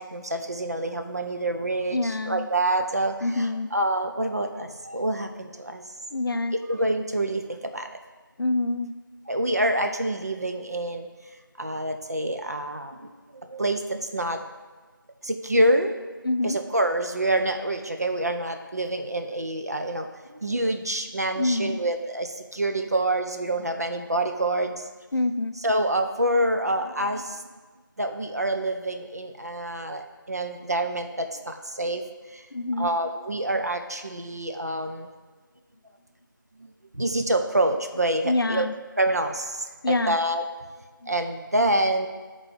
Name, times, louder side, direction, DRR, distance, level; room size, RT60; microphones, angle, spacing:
voice 1, 0.0-5.9 6.5-8.0 9.3-11.1 11.6-14.4 15.2-15.9 16.4-24.8 25.6-27.4 28.0-32.0 32.3-32.5 32.8-35.1 36.6-38.7 39.0-40.4 41.1-42.1, right 1 dB, 45° right, 6 dB, 0.5 m, -27 dB
voice 2, 1.9-2.5 3.2-3.7 6.1-6.6 8.4-8.9 16.2-16.6 21.4-21.8 25.1-25.6 32.5-32.9 38.2-38.8 39.8-40.2 41.0-41.1, left 2 dB, 75° left, 10 dB, 0.4 m, -26 dB
9.7 x 3.7 x 3.4 m, 1.3 s
figure-of-eight pair, 175°, 12 cm